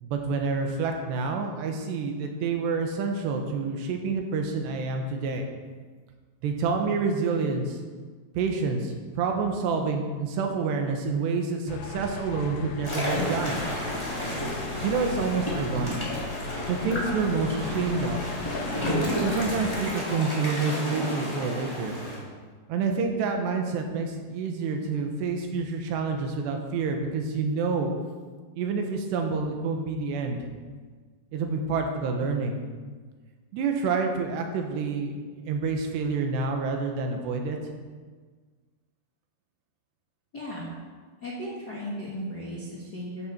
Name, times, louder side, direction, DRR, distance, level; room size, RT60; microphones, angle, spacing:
voice 1, 0.0-5.4 6.4-7.8 8.4-13.6 14.8-16.0 16.7-18.2 19.2-22.0 22.7-27.9 28.6-30.5 31.3-32.6 33.5-35.2 35.5-37.6, right 4 dB, 90° right, 3 dB, 3.5 m, -28 dB
sound 1, 11.7-19.8, left 6 dB, 90° left, 1.8 m, -37 dB
sound 2, 12.8-22.2, equal, 10° left, 2.5 m, -31 dB
voice 2, 40.3-40.7 41.2-43.3, equal, 40° left, -5 dB, 1.4 m, -36 dB
13.5 x 10.5 x 4.5 m, 1.5 s
omnidirectional pair, 4.8 m